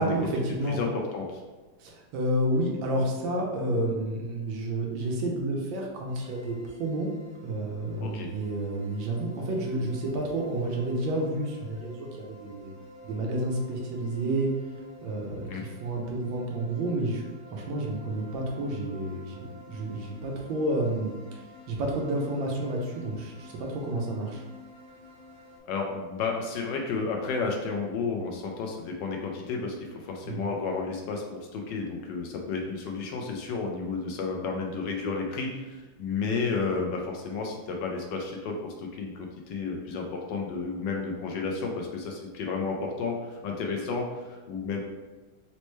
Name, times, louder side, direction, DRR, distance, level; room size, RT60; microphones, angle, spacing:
voice 1, 0.0-0.8 1.8-7.1 7.4-12.8 13.0-14.5 15.0-17.2 17.5-21.4 21.7-24.4 30.3-30.5, right 1 dB, 80° right, -1 dB, 1.4 m, -30 dB
voice 2, 0.7-1.4 8.0-8.3 15.5-15.6 25.6-44.8, left 4 dB, 75° left, 1 dB, 1.2 m, -32 dB
sound 1, 6.1-25.6, left 1 dB, 50° right, 1.5 m, -51 dB
4.1 x 2.1 x 3.1 m, 1.2 s
omnidirectional pair, 2.1 m